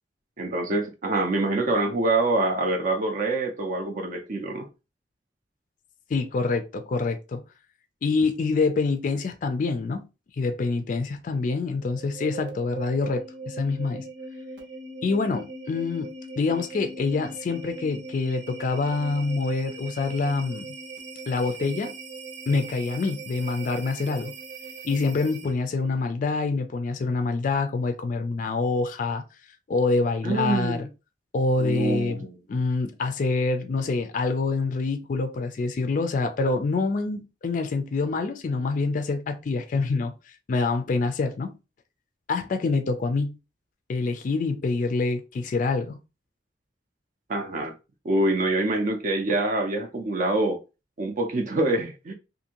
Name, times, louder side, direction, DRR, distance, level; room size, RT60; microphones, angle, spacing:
voice 1, 0.4-4.7 30.2-30.9 31.6-32.4 47.3-47.7 48.0-50.6 51.0-52.1, right 2 dB, 50° right, 0.5 m, -25 dB
voice 2, 6.1-7.4 8.0-10.1 10.4-14.1 15.0-20.7 21.3-21.9 22.5-24.3 24.8-29.2 29.7-30.9 31.3-41.5 42.3-43.4 43.9-46.0, left 3 dB, 45° left, 0.3 m, -26 dB
sound 1, 11.8-25.7, right 3 dB, 70° right, 0.8 m, -40 dB
2.6 x 2.6 x 2.8 m
head